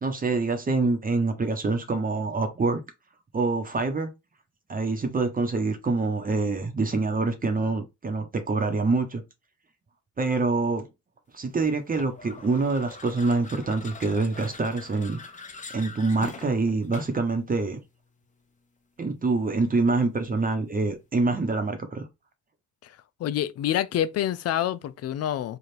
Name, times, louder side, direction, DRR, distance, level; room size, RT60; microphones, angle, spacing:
voice 1, 0.0-2.8 3.3-4.1 4.7-9.2 10.2-10.9 11.3-15.2 15.7-17.8 19.0-22.1, right 3 dB, 30° right, 0.9 m, -26 dB
sound 1, 11.9-17.3, left 4 dB, 25° left, 0.8 m, -43 dB
voice 2, 22.8-25.6, left 11 dB, 55° left, 0.4 m, -27 dB
3.3 x 2.4 x 4.3 m
cardioid pair, 90°, 30 cm